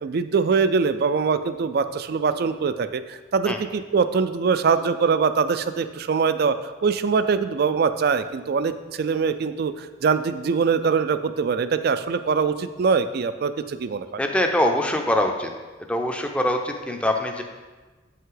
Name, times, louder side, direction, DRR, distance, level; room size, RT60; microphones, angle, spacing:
voice 1, 0.0-14.0, right 5 dB, 50° right, 11 dB, 0.3 m, -23 dB
voice 2, 14.2-15.5 15.9-17.4, left 1 dB, 5° left, 4 dB, 0.5 m, -23 dB
8.2 x 5.5 x 3.9 m, 1.3 s
head